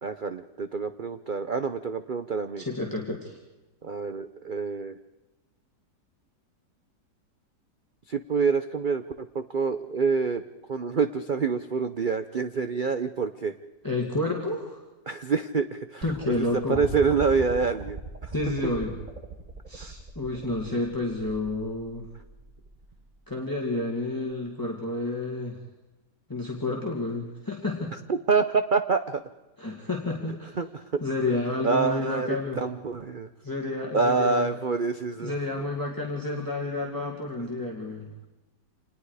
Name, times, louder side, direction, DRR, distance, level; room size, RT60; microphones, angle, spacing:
voice 1, 0.0-2.6 3.8-5.0 8.1-10.4 10.7-13.5 15.1-18.3 19.8-19.9 28.1-29.2 30.6-31.0 31.3-31.4 31.6-33.3 33.9-35.4, right 5 dB, 50° right, 10 dB, 0.5 m, -27 dB
voice 2, 2.6-3.4 13.8-14.8 16.0-16.8 18.3-18.9 19.7-22.1 23.3-25.6 26.3-27.9 29.6-30.6 31.0-32.6 33.4-34.5 35.2-38.1, left 2 dB, 10° left, -1 dB, 2.3 m, -30 dB
sound 1, 16.0-23.2 24.3-24.4, right 4 dB, 25° right, 1.3 m, -39 dB
27.0 x 20.0 x 4.9 m, 1.1 s
omnidirectional pair, 1.9 m